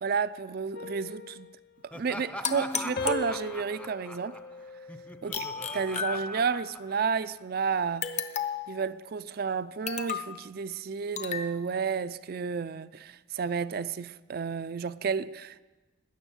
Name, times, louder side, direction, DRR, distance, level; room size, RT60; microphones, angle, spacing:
voice 1, 0.0-1.5 1.9-4.4 5.2-5.4 5.7-8.1 8.7-15.6, right 6 dB, 55° right, 0.4 m, -31 dB
sound 1, 0.7-2.6 3.0-5.5 6.0-6.3, left 4 dB, 55° left, 0.5 m, -42 dB
Laughter, 1.9-7.3, equal, 5° left, 0.7 m, -43 dB
sound 2, 2.4-3.8 5.3-6.7 8.0-8.8 9.9-10.4 11.2-11.5, left 6 dB, 40° left, 0.8 m, -34 dB
19.5 x 10.0 x 7.1 m
head